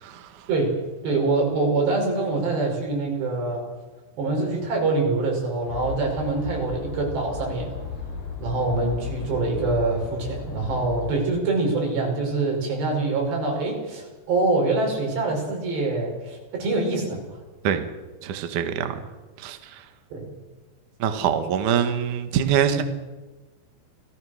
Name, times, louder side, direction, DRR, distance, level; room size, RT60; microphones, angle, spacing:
voice 1, 1.0-3.7 4.2-7.7 8.4-17.4 20.1-20.3 22.7-22.8, right 3 dB, 85° right, 0 dB, 7.6 m, -25 dB
sound 1, 5.7-11.2, left 5 dB, 80° left, 7.6 m, -35 dB
voice 2, 18.2-19.0 19.4-19.8 21.0-22.8, right 8 dB, 60° right, 7 dB, 2.5 m, -24 dB
28.5 x 18.0 x 6.5 m, 1.2 s
omnidirectional pair, 4.7 m